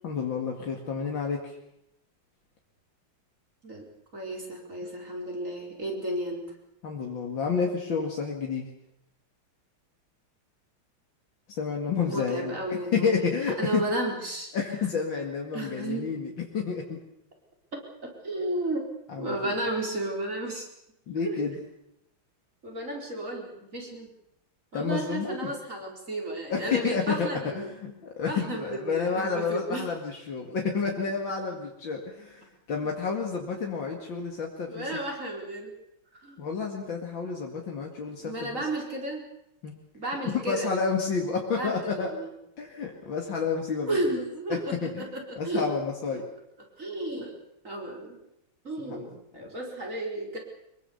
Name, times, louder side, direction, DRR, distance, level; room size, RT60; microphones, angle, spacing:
voice 1, 0.0-1.6 6.8-8.7 11.5-13.8 14.5-17.0 19.1-19.5 21.1-21.6 24.7-25.5 26.5-35.0 36.4-38.6 39.6-39.7 40.2-42.1 42.6-44.0 44.5-45.1 45.4-46.3 48.9-49.1, left 5 dB, 65° left, 0 dB, 2.9 m, -30 dB
voice 2, 3.6-6.4 12.1-14.5 15.5-16.1 18.0-18.9 19.2-20.7 21.2-21.4 22.6-24.1 24.7-27.7 28.3-29.9 32.8-32.9 34.7-35.7 36.2-36.5 38.1-39.3 39.9-40.7 41.5-42.3 43.8-45.7 46.1-46.2 46.8-47.3 47.6-48.2 48.6-50.4, right 1 dB, 35° right, 0 dB, 5.0 m, -33 dB
24.0 x 22.5 x 7.1 m, 0.81 s
omnidirectional pair, 2.2 m